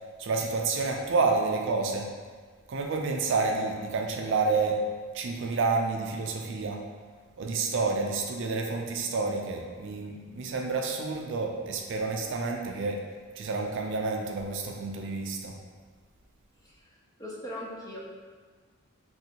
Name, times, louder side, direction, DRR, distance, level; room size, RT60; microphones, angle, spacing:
voice 1, 0.2-2.1 2.7-4.8 5.1-6.8 7.4-13.0 13.4-15.5, right 4 dB, 60° right, 1 dB, 0.4 m, -29 dB
voice 2, 17.2-18.0, left 1 dB, 15° left, -3 dB, 0.4 m, -39 dB
3.0 x 2.7 x 2.8 m, 1.5 s
head